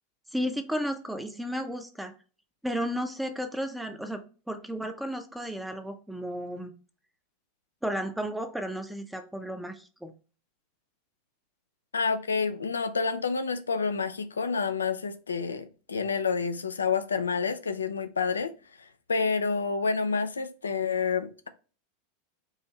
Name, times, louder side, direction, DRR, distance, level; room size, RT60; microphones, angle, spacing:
voice 1, 0.3-2.1 2.6-6.7 7.8-10.1, equal, 5° right, 0.6 m, -33 dB
voice 2, 11.9-18.5 19.1-21.5, left 5 dB, 80° left, 0.4 m, -28 dB
4.6 x 2.6 x 3.2 m
figure-of-eight pair, 85°, 0 cm